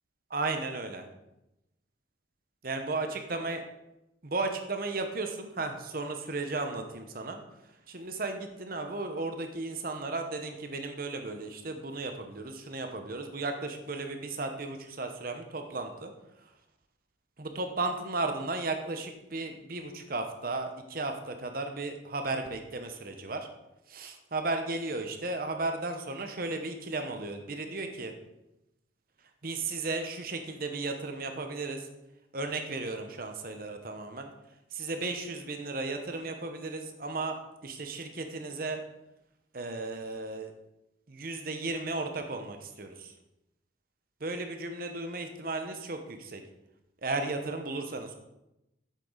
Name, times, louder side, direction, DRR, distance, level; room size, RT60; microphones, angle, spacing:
voice 1, 0.3-1.0 2.6-3.6 4.2-7.4 7.9-16.1 17.4-23.5 23.9-28.1 29.4-31.9 32.3-34.3 34.7-38.8 39.5-40.5 41.1-43.1 44.2-46.4 47.0-48.1, right 3 dB, 50° right, 6 dB, 0.9 m, -35 dB
8.3 x 6.7 x 3.8 m, 0.91 s
head